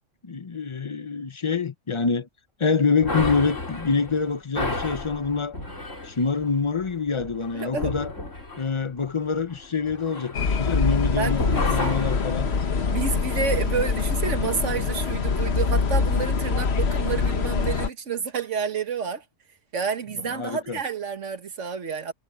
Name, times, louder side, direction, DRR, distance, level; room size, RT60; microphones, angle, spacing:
voice 1, 0.2-2.3 2.6-5.6 6.0-8.1 8.6-12.5 20.2-20.8, left 5 dB, 30° left, 0.7 m, -26 dB
sound 1, 3.0-11.0 11.3-13.7, left 2 dB, 90° left, 4.3 m, -33 dB
voice 2, 7.5-7.9 11.2-12.0 12.9-19.2 19.7-22.1, right 6 dB, 75° right, 1.8 m, -29 dB
sound 2, 10.3-17.9, left 5 dB, 60° left, 1.4 m, -24 dB
omnidirectional pair, 1.3 m